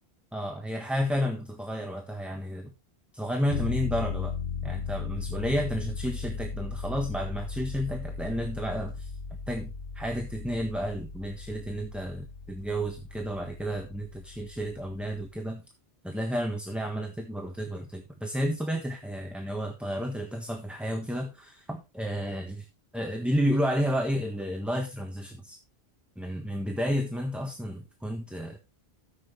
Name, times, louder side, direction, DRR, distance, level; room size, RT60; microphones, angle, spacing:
voice 1, 0.3-2.7 3.1-4.3 4.6-9.1 9.5-15.6 16.0-22.7 22.9-25.6 26.2-28.6, equal, ahead, 3 dB, 1.4 m, -31 dB
sound 1, 3.5-15.4, left 5 dB, 85° left, 1.3 m, -37 dB
13.5 x 7.8 x 3.2 m, 0.25 s
omnidirectional pair, 1.1 m